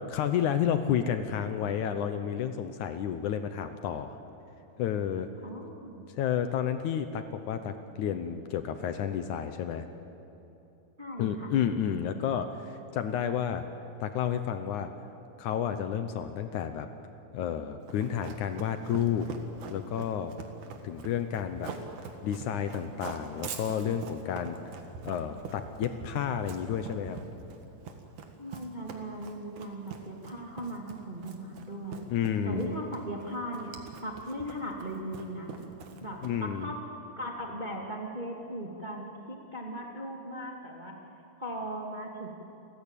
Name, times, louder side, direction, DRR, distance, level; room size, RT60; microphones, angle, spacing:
voice 1, 0.0-4.2 4.8-5.3 6.1-9.9 11.2-13.7 14.0-14.9 15.4-16.9 17.3-19.3 19.7-20.3 20.8-21.7 22.2-24.6 25.0-27.2 32.1-32.7 36.2-36.7, left 9 dB, 70° left, 9 dB, 2.2 m, -31 dB
voice 2, 5.4-6.0 11.0-11.5 28.4-32.1 32.4-33.7 34.0-35.5 36.0-36.8 37.2-41.0 41.4-42.3, right 1 dB, 15° right, 0 dB, 1.8 m, -38 dB
Run, 17.9-36.5, right 6 dB, 65° right, 3.0 m, -44 dB
28.5 x 15.5 x 9.0 m, 2.9 s
omnidirectional pair, 3.8 m